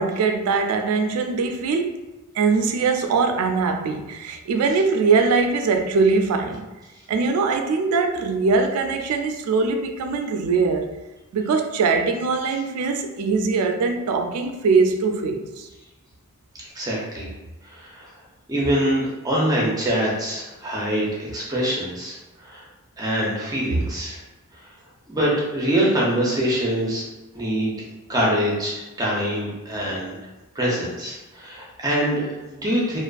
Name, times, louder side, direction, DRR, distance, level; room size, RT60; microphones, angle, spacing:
voice 1, 0.0-2.0 2.3-6.6 7.1-10.9 11.3-15.7 23.7-23.8, right 4 dB, 80° right, 0.3 m, -22 dB
voice 2, 16.6-17.3 17.6-18.1 18.5-22.6 23.0-24.2 24.5-24.7 25.1-27.1 27.3-27.7 28.1-30.2 30.6-33.0, equal, 15° right, 0.4 m, -24 dB
2.4 x 2.4 x 2.2 m
head